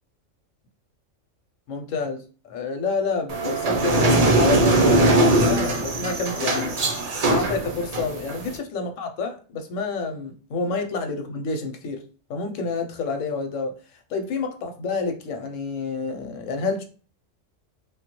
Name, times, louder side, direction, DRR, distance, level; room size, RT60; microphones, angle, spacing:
voice 1, 1.7-6.7 7.2-12.0 12.3-13.8 14.1-16.8, left 4 dB, 90° left, 1.0 m, -29 dB
sound 1, 3.3-8.6, right 2 dB, 55° right, 0.4 m, -21 dB
3.3 x 2.2 x 2.9 m
omnidirectional pair, 1.3 m